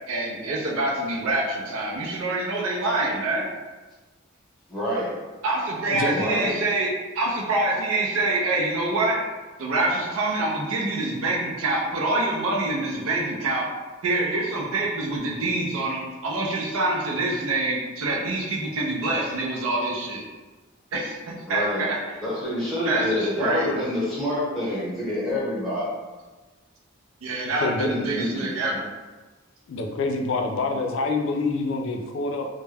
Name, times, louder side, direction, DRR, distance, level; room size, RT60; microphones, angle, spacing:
voice 1, 0.1-3.5 5.4-6.9 7.1-9.2 9.6-13.7 14.0-20.2 20.9-21.2 21.5-22.0 22.9-23.8 27.2-28.9, right 2 dB, 80° right, -2 dB, 0.5 m, -26 dB
voice 2, 4.7-5.1 6.1-6.6 21.5-21.8 22.2-25.9 27.9-28.5, left 1 dB, ahead, -9 dB, 0.8 m, -27 dB
voice 3, 5.9-6.2 27.6-28.1 29.7-32.5, left 3 dB, 65° left, 3 dB, 0.3 m, -26 dB
2.2 x 2.1 x 3.2 m, 1.2 s
head